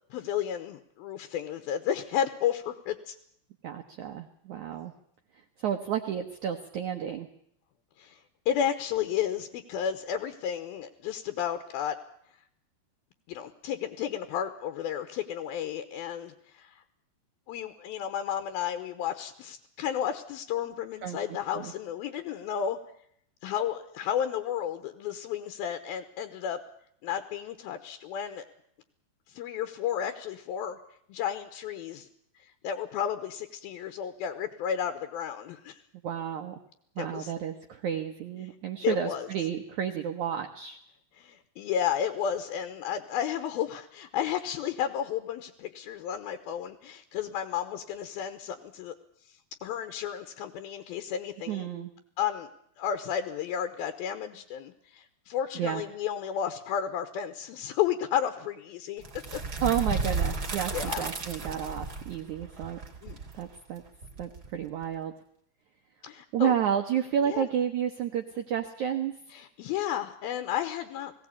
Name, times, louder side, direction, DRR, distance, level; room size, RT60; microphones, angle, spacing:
voice 1, 0.1-3.1 8.0-8.2 8.5-12.0 13.3-16.8 17.5-22.8 23.4-26.6 27.0-28.4 29.3-30.8 31.1-32.1 32.6-35.8 37.0-37.3 38.8-39.3 41.2-49.0 49.6-51.7 52.2-52.5 52.8-59.0 60.7-61.0 63.0-63.2 66.0-66.5 67.2-67.5 69.3-71.1, left 9 dB, 70° left, 9 dB, 2.6 m, -32 dB
voice 2, 3.6-4.9 5.6-7.3 21.0-21.7 36.0-36.6 36.9-40.8 51.5-51.9 55.6-55.8 59.6-62.8 63.4-63.8 64.2-65.1 66.3-69.1, right 9 dB, 80° right, 5 dB, 1.7 m, -31 dB
sound 1, 59.0-64.8, right 3 dB, 25° right, 2.4 m, -34 dB
19.5 x 17.0 x 8.5 m, 0.70 s
omnidirectional pair, 5.1 m